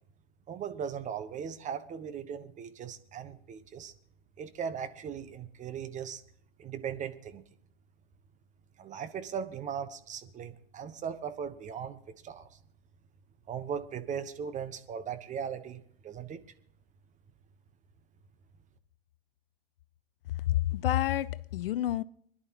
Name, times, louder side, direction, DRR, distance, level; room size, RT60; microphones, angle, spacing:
voice 1, 0.5-3.9 4.4-6.2 6.6-7.4 8.8-12.6 13.5-16.4, right 7 dB, 25° right, 1.2 m, -38 dB
voice 2, 20.5-22.0, left 13 dB, 60° left, 0.6 m, -29 dB
25.0 x 11.0 x 3.0 m
figure-of-eight pair, 100°, 32 cm